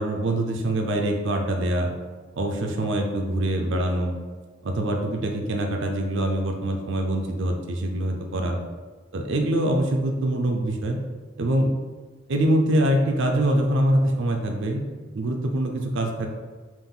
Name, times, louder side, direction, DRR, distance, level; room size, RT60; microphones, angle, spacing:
voice 1, 0.0-1.9 2.3-4.1 4.6-8.6 9.1-11.0 11.4-11.7 12.3-14.8 15.1-16.3, right 1 dB, 65° right, 2 dB, 0.5 m, -24 dB
5.4 x 2.6 x 3.8 m, 1.4 s
head